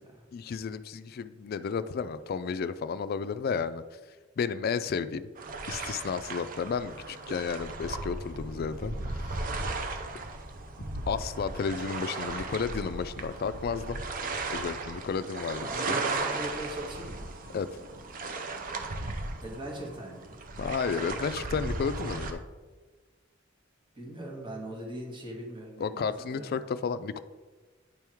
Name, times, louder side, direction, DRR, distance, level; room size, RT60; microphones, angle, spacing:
voice 1, 0.3-3.8 4.4-5.2 5.7-9.5 11.1-14.0 14.5-16.0 17.5-17.8 20.6-22.4 25.8-27.2, left 5 dB, 50° left, 13 dB, 0.3 m, -32 dB
sound 1, 5.4-22.3, right 3 dB, 45° right, 0.7 m, -36 dB
voice 2, 15.6-17.3 19.4-20.4 23.9-26.6, right 1 dB, 25° right, -2 dB, 1.7 m, -40 dB
9.6 x 3.5 x 4.5 m, 1.3 s
head